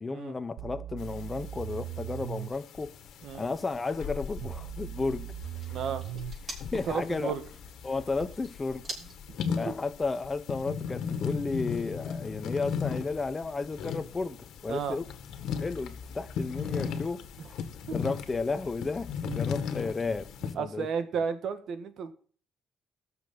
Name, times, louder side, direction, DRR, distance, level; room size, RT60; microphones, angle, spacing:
voice 1, 0.0-3.0 3.4-5.3 6.5-7.3 7.8-8.8 9.6-15.1 15.6-17.2 17.9-20.9, left 3 dB, 25° left, 0.9 m, -33 dB
sound 1, 0.6-2.5 4.4-6.4 8.2-8.3, right 13 dB, 90° right, 0.7 m, -39 dB
sound 2, 1.0-20.5, left 6 dB, 80° left, 1.8 m, -37 dB
sound 3, 5.2-10.3, right 2 dB, 30° right, 6.4 m, -47 dB
voice 2, 5.7-6.0 6.9-7.4 9.5-9.7 14.7-15.0 17.4-17.5 17.8-18.0 20.6-22.1, right 6 dB, 70° right, 1.8 m, -33 dB
19.0 x 7.0 x 3.9 m
cardioid pair, 90°, 0 cm